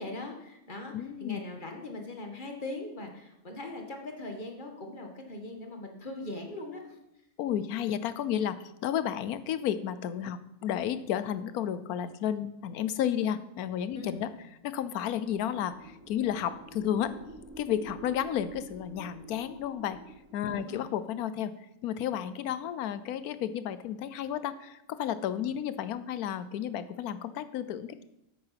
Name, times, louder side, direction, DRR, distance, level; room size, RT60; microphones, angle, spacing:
voice 1, 0.0-7.0 13.9-14.3 20.5-20.8, left 2 dB, 35° left, 3 dB, 1.6 m, -40 dB
voice 2, 0.9-1.4 7.4-14.3 14.6-17.1 17.6-20.0 20.3-21.5 21.8-28.0, left 10 dB, 80° left, 14 dB, 1.2 m, -32 dB
sound 1, 14.8-20.9, right 2 dB, 10° right, 2.3 m, -50 dB
8.8 x 8.7 x 5.8 m, 0.85 s
omnidirectional pair, 1.6 m